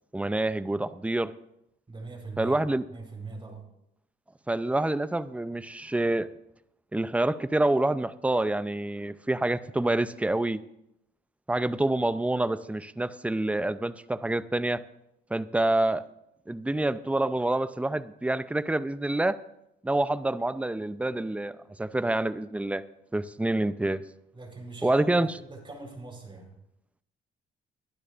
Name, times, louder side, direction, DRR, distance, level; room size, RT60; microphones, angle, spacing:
voice 1, 0.1-1.3 2.4-2.8 4.5-6.3 6.9-10.6 11.5-14.8 15.3-16.0 16.5-19.4 19.8-22.8 23.1-24.0 24.8-25.3, right 2 dB, 5° right, 14 dB, 0.5 m, -27 dB
voice 2, 1.9-3.6 24.3-26.5, right 3 dB, 25° right, 2 dB, 4.2 m, -42 dB
21.0 x 12.0 x 2.6 m, 0.81 s
cardioid pair, 90°, 20 cm